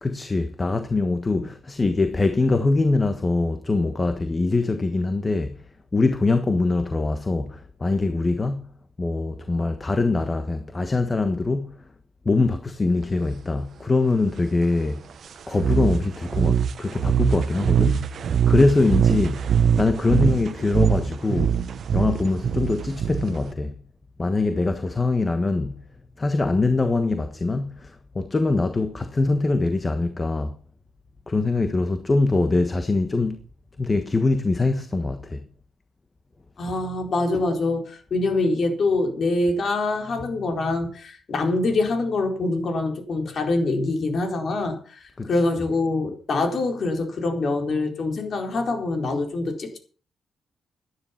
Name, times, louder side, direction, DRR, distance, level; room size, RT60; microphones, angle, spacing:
voice 1, 0.0-5.6 5.9-8.7 9.0-11.9 12.2-15.0 15.5-18.1 18.5-19.5 19.8-21.6 21.9-23.7 24.2-25.8 26.2-30.5 31.3-33.4 33.8-35.4 45.2-45.3, left 3 dB, 25° left, 1.4 m, -23 dB
sound 1, 15.5-23.5, right 8 dB, 65° right, 0.9 m, -22 dB
voice 2, 36.6-49.8, left 2 dB, 55° left, 4.3 m, -25 dB
13.0 x 11.0 x 5.9 m
cardioid pair, 100°, 0 cm